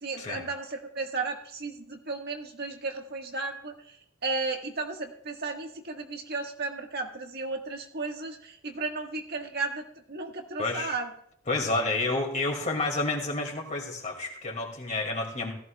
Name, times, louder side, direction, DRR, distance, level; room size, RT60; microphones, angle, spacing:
voice 1, 0.0-4.0 4.2-11.1, right 3 dB, 55° right, 3 dB, 1.6 m, -34 dB
voice 2, 10.6-10.9 11.5-15.5, left 2 dB, 40° left, 0 dB, 2.4 m, -30 dB
17.5 x 14.0 x 2.3 m, 0.68 s
head